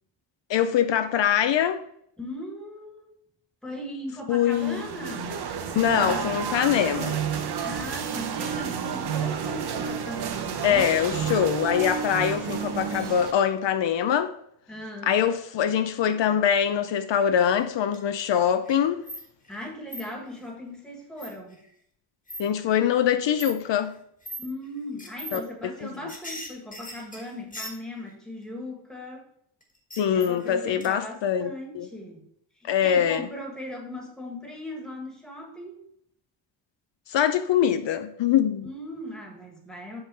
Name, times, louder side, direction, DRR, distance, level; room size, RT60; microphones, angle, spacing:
voice 1, 0.5-1.8 4.3-4.8 5.8-7.2 10.6-14.3 15.0-19.0 22.4-24.0 25.3-25.4 25.8-26.1 30.0-31.9 32.7-33.3 37.1-38.7, left 9 dB, 75° left, 0.6 m, -23 dB
voice 2, 2.2-3.1 3.6-5.4 7.6-10.9 14.7-15.2 19.5-21.6 24.4-29.2 30.1-32.2 32.6-35.8 38.6-40.0, left 1 dB, ahead, 1.5 m, -38 dB
sound 1, 4.5-13.3, right 7 dB, 60° right, 0.8 m, -30 dB
sound 2, 17.5-18.0 18.3-19.6 19.9-20.0 21.2-21.5 22.3-22.4 22.8-22.9 23.3-23.5 24.2-24.5 25.0-25.4 25.7-28.1 29.6-30.5 30.8-30.9, equal, 20° left, 1.4 m, -39 dB
7.9 x 3.7 x 5.4 m
wide cardioid pair, 165°, 44 cm